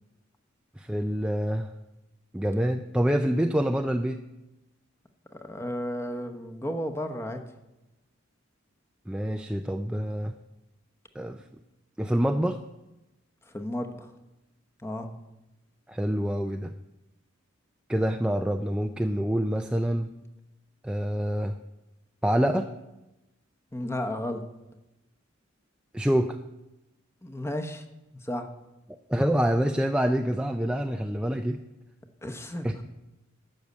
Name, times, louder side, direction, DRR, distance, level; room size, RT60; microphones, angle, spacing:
voice 1, 0.8-1.7 2.3-4.2 9.1-10.3 11.2-11.4 12.0-12.6 15.9-16.7 17.9-20.1 20.8-21.6 22.2-22.7 25.9-26.4 29.1-31.6 32.6-32.8, equal, 5° right, 5 dB, 0.3 m, -26 dB
voice 2, 5.3-7.4 13.5-14.1 14.8-15.1 23.7-24.4 27.2-27.8 28.2-28.5 32.2-32.8, left 1 dB, 15° left, 6 dB, 0.9 m, -33 dB
12.0 x 6.4 x 8.3 m, 0.98 s
head